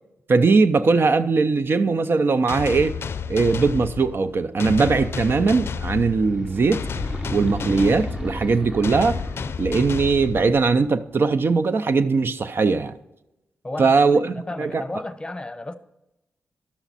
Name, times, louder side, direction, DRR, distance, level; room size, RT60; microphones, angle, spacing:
voice 1, 0.3-3.0 3.3-6.8 7.3-9.2 9.6-12.9 13.8-14.8, right 4 dB, 55° right, 0.5 m, -20 dB
sound 1, 2.5-10.9, left 6 dB, 60° left, 0.4 m, -31 dB
sound 2, 5.9-9.8, right 1 dB, 15° right, 0.8 m, -34 dB
voice 2, 13.6-13.9 14.3-15.8, left 2 dB, 20° left, 0.8 m, -33 dB
11.5 x 7.0 x 4.1 m
cardioid pair, 50°, 5 cm